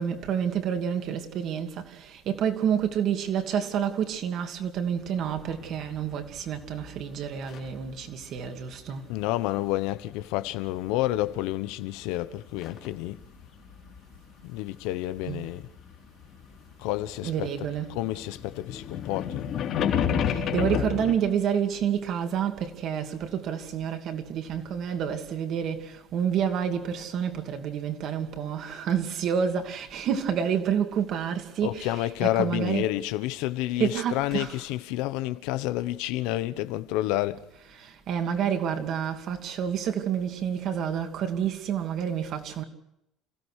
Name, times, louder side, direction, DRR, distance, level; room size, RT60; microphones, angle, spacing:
voice 1, 0.0-9.1 15.3-15.4 17.2-18.0 20.1-32.9 33.8-34.6 37.8-42.6, right 8 dB, 45° right, 2.7 m, -29 dB
sound 1, 5.1-7.9 8.2-9.4 10.2-11.7 12.0-17.1 17.4-21.1, left 8 dB, 45° left, 3.7 m, -31 dB
voice 2, 9.1-13.2 14.4-15.7 16.8-19.5 31.6-37.4, left 15 dB, 85° left, 1.1 m, -29 dB
29.5 x 16.5 x 6.5 m
cardioid pair, 170°, 0 cm